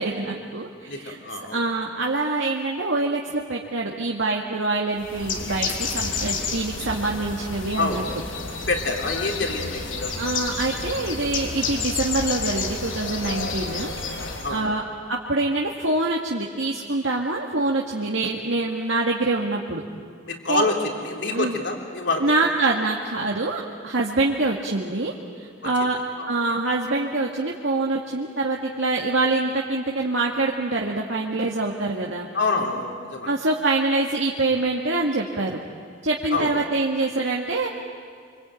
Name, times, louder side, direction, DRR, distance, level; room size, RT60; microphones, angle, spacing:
voice 1, 0.0-1.2 1.5-8.0 10.2-13.9 14.5-14.8 15.1-19.8 20.5-20.7 21.3-21.6 22.2-26.0 26.3-32.3 33.3-35.6 36.0-37.7, right 2 dB, 75° right, -1 dB, 1.9 m, -25 dB
voice 2, 0.9-1.6 7.8-8.0 8.7-10.1 14.4-14.6 20.2-22.3 26.2-26.3 32.3-33.3 36.3-36.6, left 3 dB, 60° left, 2 dB, 3.5 m, -26 dB
Bird, 5.0-14.6, left 4 dB, 85° left, 3.3 m, -30 dB
26.0 x 25.5 x 9.1 m, 2.1 s
head